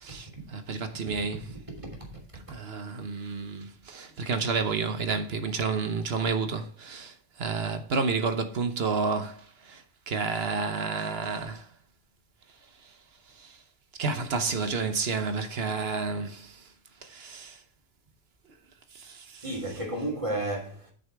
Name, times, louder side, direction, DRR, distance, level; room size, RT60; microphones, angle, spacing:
voice 1, 0.0-1.5 2.3-11.7 12.8-12.9 13.3-13.6 14.0-16.7 17.0-17.6 18.9-19.4, right 4 dB, 55° right, 1.2 m, -31 dB
voice 2, 19.4-20.9, right 1 dB, 25° right, 3.0 m, -32 dB
9.0 x 6.8 x 3.4 m
omnidirectional pair, 1.3 m